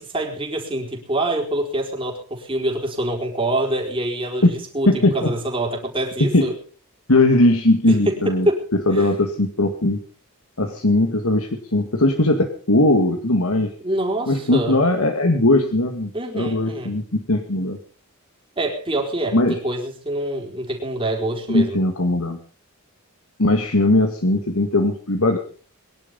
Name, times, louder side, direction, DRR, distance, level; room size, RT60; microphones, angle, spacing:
voice 1, 0.0-6.5 7.9-8.6 8.9-9.1 13.8-14.8 16.1-16.9 18.6-21.8, right 1 dB, 25° right, 1 dB, 4.4 m, -25 dB
voice 2, 4.9-5.3 6.2-6.5 7.1-8.5 8.9-10.0 10.6-13.7 14.3-17.8 19.3-19.6 21.5-22.4 23.4-25.4, left 2 dB, 75° left, 4 dB, 2.1 m, -19 dB
23.0 x 11.0 x 5.4 m, 0.41 s
head